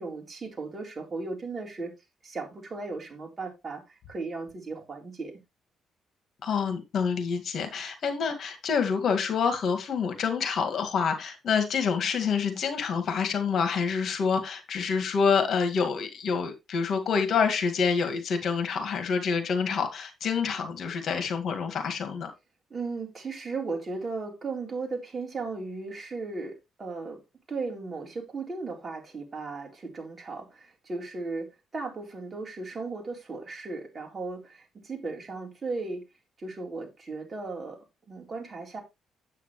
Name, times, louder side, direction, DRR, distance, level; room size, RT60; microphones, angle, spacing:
voice 1, 0.0-1.9 2.2-5.3 22.7-27.2 27.5-36.0 36.4-37.8 38.1-38.8, right 3 dB, 35° right, 3.7 m, -36 dB
voice 2, 6.4-22.3, left 6 dB, 60° left, 1.9 m, -27 dB
9.1 x 8.3 x 3.1 m
cardioid pair, 90°, 0 cm